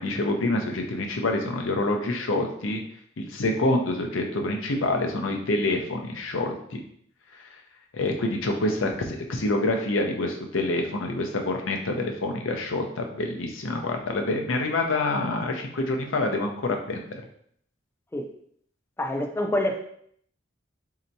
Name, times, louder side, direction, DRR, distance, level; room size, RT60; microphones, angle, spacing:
voice 1, 0.0-2.8 3.2-6.8 7.9-17.2, left 2 dB, 75° left, 3 dB, 0.6 m, -27 dB
voice 2, 19.0-19.8, left 1 dB, 10° left, 4 dB, 0.4 m, -26 dB
4.4 x 2.8 x 2.6 m, 0.65 s
head